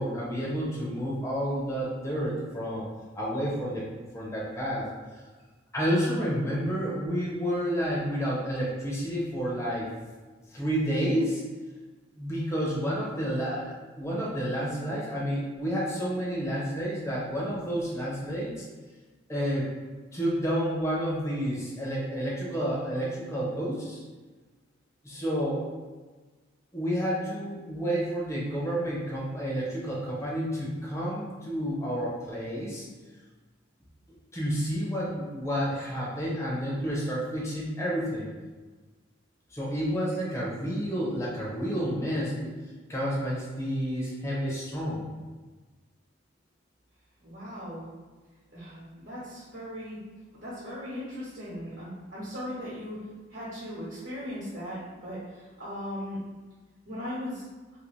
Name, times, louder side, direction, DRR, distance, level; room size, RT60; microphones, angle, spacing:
voice 1, 0.0-2.9 3.1-3.9 4.1-4.9 5.7-9.9 10.5-11.4 12.2-18.6 19.3-19.6 20.1-24.0 25.0-25.6 26.7-32.8 34.1-38.3 39.5-42.5 42.9-45.0, equal, 15° left, -6 dB, 0.6 m, -30 dB
voice 2, 47.2-47.8 48.5-50.0 50.4-53.0 53.3-56.2 56.9-57.4, equal, 60° right, -8 dB, 1.0 m, -38 dB
2.7 x 2.6 x 3.1 m, 1.3 s
head